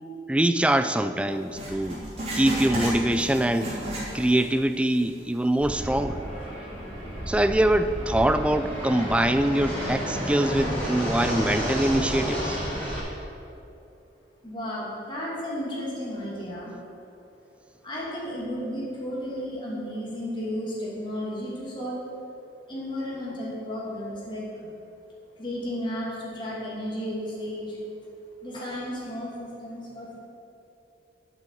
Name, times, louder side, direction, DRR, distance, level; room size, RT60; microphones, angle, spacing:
voice 1, 0.3-2.0 2.3-3.8 4.1-6.2 7.3-12.6, right 1 dB, 5° right, 10 dB, 0.3 m, -23 dB
Writing, 1.5-4.5 4.8-4.9 5.6-5.7, equal, 30° right, 2.8 m, -32 dB
Fixed-wing aircraft airplane, 5.6-13.0, equal, 10° left, 3.0 m, -31 dB
voice 2, 14.4-16.7 17.8-22.0 22.7-24.7 25.4-27.8 28.4-30.2, equal, 25° left, -6 dB, 2.7 m, -33 dB
8.4 x 7.2 x 8.1 m, 2.7 s
head